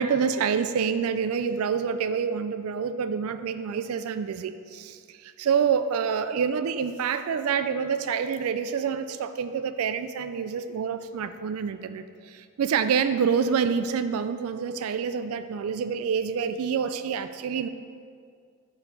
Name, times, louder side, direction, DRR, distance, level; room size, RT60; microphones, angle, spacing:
voice 1, 0.0-17.7, right 6 dB, 80° right, 11 dB, 0.4 m, -27 dB
9.4 x 4.6 x 5.3 m, 2.2 s
head